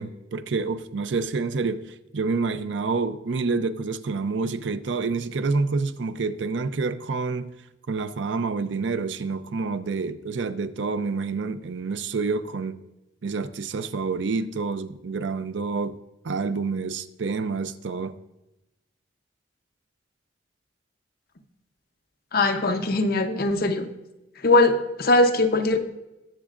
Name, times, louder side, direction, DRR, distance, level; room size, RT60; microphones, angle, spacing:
voice 1, 0.0-7.5 7.9-12.8 13.2-16.0 16.2-18.1, right 4 dB, 80° right, 0.5 m, -28 dB
voice 2, 22.3-23.9 24.4-25.8, left 2 dB, 55° left, 0.8 m, -20 dB
18.5 x 7.3 x 2.5 m
head